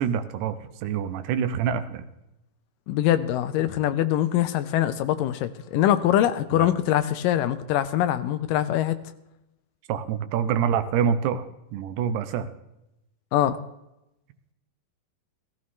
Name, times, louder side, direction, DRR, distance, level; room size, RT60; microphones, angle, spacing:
voice 1, 0.0-2.0 6.5-6.7 9.9-11.5 11.7-12.5, right 8 dB, 85° right, 3.0 m, -26 dB
voice 2, 2.9-9.0 13.3-13.6, left 12 dB, 80° left, 2.0 m, -23 dB
16.0 x 15.0 x 3.2 m
omnidirectional pair, 4.6 m